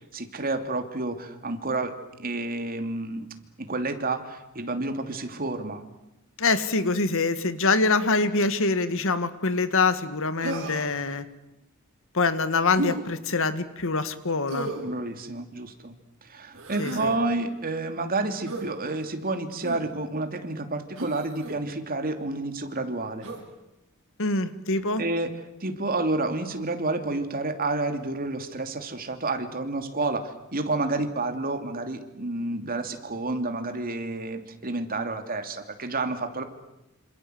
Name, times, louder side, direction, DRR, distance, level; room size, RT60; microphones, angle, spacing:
voice 1, 0.1-3.3 3.6-5.8 14.8-15.9 16.2-23.3 25.0-25.3 25.6-36.4, right 2 dB, 45° right, 7 dB, 2.9 m, -30 dB
voice 2, 6.4-11.3 12.1-14.7 16.8-17.1 24.2-25.0, left 3 dB, 65° left, 11 dB, 2.0 m, -25 dB
Human voice, 10.4-11.0 12.7-13.0 14.5-14.9 16.5-17.1 18.5-18.7 19.6-19.9 21.0-21.6 23.2-23.5, right 2 dB, 60° right, 6.9 m, -33 dB
27.5 x 27.0 x 8.1 m, 0.91 s
head